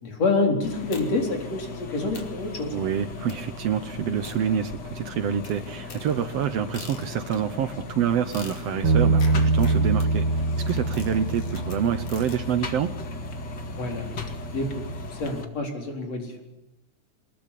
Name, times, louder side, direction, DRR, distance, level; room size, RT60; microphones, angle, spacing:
voice 1, 0.0-2.8 13.8-14.9 15.2-16.4, left 3 dB, 55° left, 2 dB, 5.3 m, -27 dB
sound 1, 0.6-15.4, left 4 dB, 40° left, 2.3 m, -38 dB
sound 2, 0.9-1.4 1.8-1.9 2.1-2.5 3.3-3.6 4.2-5.0 5.4-7.5 8.3-12.5, left 5 dB, 90° left, 4.1 m, -45 dB
voice 2, 2.7-10.3 10.6-12.9, right 9 dB, 65° right, 11 dB, 1.8 m, -27 dB
Bass guitar, 8.8-15.1, right 3 dB, 50° right, 2.9 m, -25 dB
23.5 x 21.0 x 8.5 m, 0.92 s
omnidirectional pair, 3.4 m